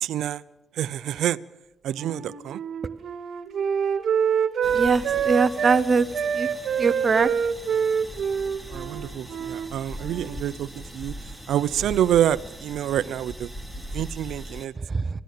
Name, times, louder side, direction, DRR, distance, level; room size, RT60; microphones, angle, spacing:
voice 1, 0.0-0.4 0.7-1.4 1.8-2.6 8.7-11.1 11.5-13.5 13.9-14.7, right 11 dB, 75° right, 15 dB, 0.7 m, -27 dB
Wind instrument woodwind instrument, 1.9-5.8 6.1-9.7 10.0-10.5, right 7 dB, 60° right, 2.1 m, -26 dB
sound 1, 4.6-14.7, equal, 5° left, 2.8 m, -40 dB
voice 2, 4.7-6.1 6.3-6.5 6.8-7.3 14.9-15.0, right 4 dB, 35° right, 11 dB, 1.0 m, -21 dB
25.0 x 17.5 x 6.8 m, 0.89 s
cardioid pair, 90°, 0 cm